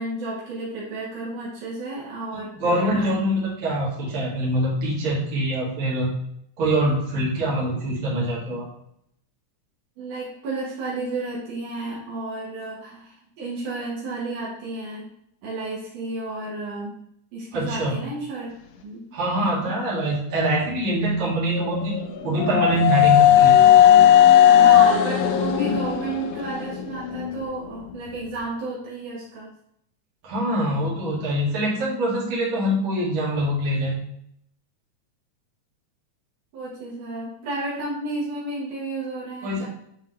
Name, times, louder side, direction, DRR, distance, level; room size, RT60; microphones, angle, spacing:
voice 1, 0.0-3.2 10.0-15.1 15.4-16.9 17.3-18.5 18.8-19.2 19.5-19.8 24.4-29.5 36.5-39.7, right 2 dB, 85° right, -6 dB, 3.1 m, -32 dB
voice 2, 2.6-6.1 6.6-8.7 17.5-18.0 19.1-23.6 30.2-34.0 39.4-39.7, right 1 dB, 65° right, -6 dB, 3.4 m, -24 dB
sound 1, 21.5-27.4, left 10 dB, 85° left, 2.1 m, -16 dB
10.5 x 3.7 x 3.2 m, 0.72 s
omnidirectional pair, 3.6 m